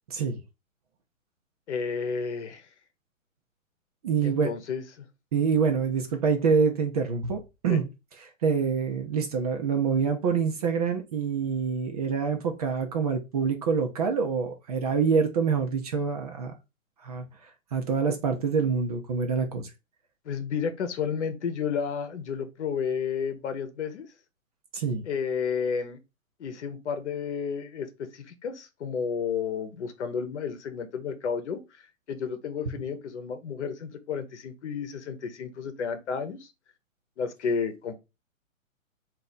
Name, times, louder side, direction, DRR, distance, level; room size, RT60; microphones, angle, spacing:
voice 1, 0.1-0.4 4.0-4.5 5.3-7.8 8.4-16.5 17.0-19.7 24.7-25.0, right 5 dB, 30° right, 0.6 m, -26 dB
voice 2, 1.7-2.7 4.2-5.0 7.7-7.8 20.2-24.1 25.0-26.0 26.4-36.5 37.2-37.9, left 6 dB, 55° left, 1.0 m, -32 dB
4.1 x 2.7 x 4.0 m
hypercardioid pair, 135°, 41 cm